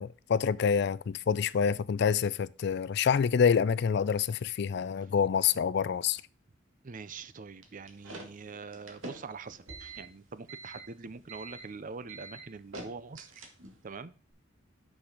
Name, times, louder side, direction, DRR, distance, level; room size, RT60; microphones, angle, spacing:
voice 1, 0.0-6.2, left 7 dB, 60° left, 0.4 m, -27 dB
voice 2, 6.8-13.3 13.8-14.1, right 4 dB, 45° right, 0.5 m, -44 dB
sound 1, 7.6-13.9, right 2 dB, 90° right, 1.8 m, -46 dB
6.3 x 6.0 x 5.0 m
head